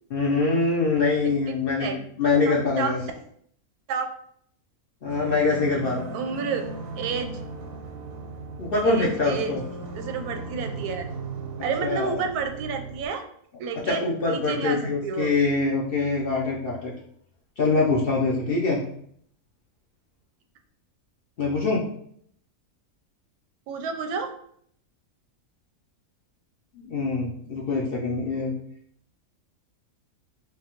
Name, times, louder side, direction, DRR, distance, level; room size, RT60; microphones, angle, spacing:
voice 1, 0.1-3.0 5.0-6.1 8.6-9.6 11.8-12.2 13.9-16.9 17.6-18.8 21.4-21.8 26.8-28.5, left 3 dB, 55° left, -4 dB, 0.6 m, -24 dB
voice 2, 1.2-2.1 2.4-2.9 3.9-4.1 6.1-7.4 8.8-9.6 9.9-11.1 11.6-13.2 13.6-15.4 23.7-24.3, right 5 dB, 90° right, 6 dB, 1.1 m, -30 dB
sound 1, 5.1-13.1, right 3 dB, 65° right, 0.8 m, -37 dB
4.8 x 2.2 x 2.9 m, 0.65 s
omnidirectional pair, 1.6 m